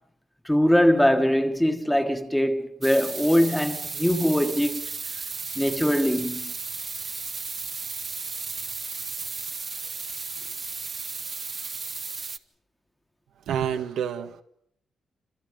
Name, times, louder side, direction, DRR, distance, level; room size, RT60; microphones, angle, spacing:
voice 1, 0.4-4.8 5.5-6.5, equal, 5° left, 1.5 m, -22 dB
sound 1, 2.8-12.4, right 4 dB, 30° right, 0.9 m, -34 dB
voice 2, 13.5-14.4, right 8 dB, 90° right, 1.5 m, -28 dB
29.0 x 27.0 x 5.2 m
cardioid pair, 140°, 0 cm